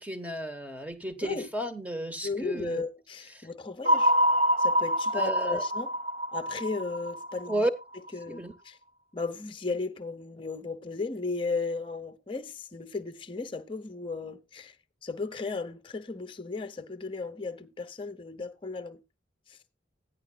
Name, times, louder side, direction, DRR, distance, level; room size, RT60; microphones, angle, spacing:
voice 1, 0.0-2.8 3.3-3.5 5.1-5.6 7.5-7.7 8.3-8.5, right 1 dB, 10° right, 1.1 m, -33 dB
voice 2, 2.2-4.1 4.6-6.0 6.3-7.7 8.1-8.8 9.1-14.8 15.0-19.0 19.5-19.6, left 3 dB, 25° left, 0.8 m, -35 dB
sound 1, 3.8-8.1, equal, 35° right, 1.0 m, -26 dB
14.5 x 10.5 x 2.3 m
head